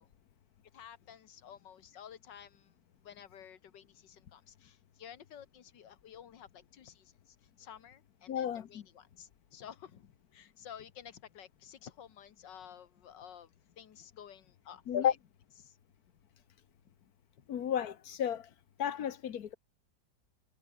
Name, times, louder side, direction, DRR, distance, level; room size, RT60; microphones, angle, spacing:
voice 1, 0.7-2.7 3.0-13.5 13.8-15.2 15.6-15.8 16.9-17.0 17.4-17.5, left 9 dB, 80° left, 2.0 m, -52 dB
voice 2, 8.3-8.8 14.9-15.1 17.5-18.5 18.8-19.6, left 9 dB, 60° left, 1.5 m, -32 dB
omnidirectional pair, 1.9 m